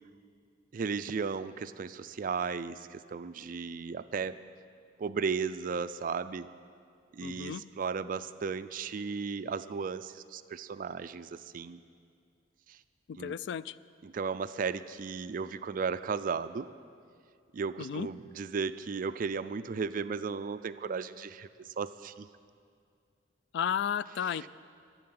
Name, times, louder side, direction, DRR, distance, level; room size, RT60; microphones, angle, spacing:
voice 1, 0.7-4.4 5.0-6.5 7.1-11.8 12.7-12.8 13.2-13.3 14.0-16.7 17.5-21.5 21.8-22.3 24.3-24.5, right 5 dB, 50° right, 13 dB, 0.4 m, -35 dB
voice 2, 7.2-7.6 13.1-13.7 17.8-18.1 23.5-24.5, left 8 dB, 65° left, 18 dB, 0.3 m, -33 dB
11.0 x 7.7 x 9.7 m, 2.3 s
head